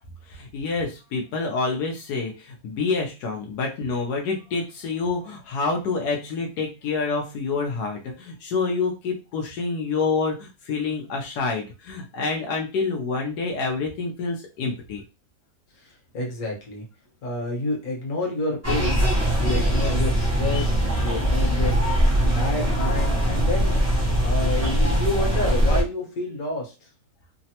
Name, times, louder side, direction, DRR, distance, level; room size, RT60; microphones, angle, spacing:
voice 1, 0.3-15.0, left 4 dB, 90° left, 1 dB, 1.2 m, -27 dB
voice 2, 15.8-16.9 17.2-19.0 19.4-22.0 22.3-23.8 24.2-26.7, left 2 dB, 65° left, 0 dB, 1.4 m, -29 dB
sound 1, 18.6-25.8, right 1 dB, 20° right, 0.4 m, -21 dB
3.3 x 2.0 x 2.7 m, 0.30 s
omnidirectional pair, 1.7 m